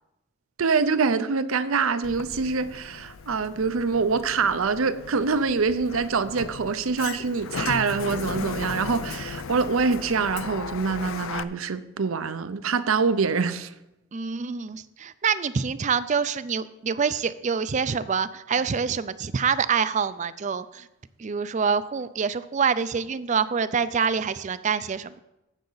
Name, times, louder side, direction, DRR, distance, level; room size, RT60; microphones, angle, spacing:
voice 1, 0.6-13.7, right 4 dB, 80° right, 0.6 m, -25 dB
Sliding door, 2.0-11.4, left 5 dB, 75° left, 0.5 m, -36 dB
voice 2, 14.1-20.9 21.2-25.2, right 6 dB, 35° right, 0.4 m, -26 dB
15.5 x 6.5 x 4.0 m
head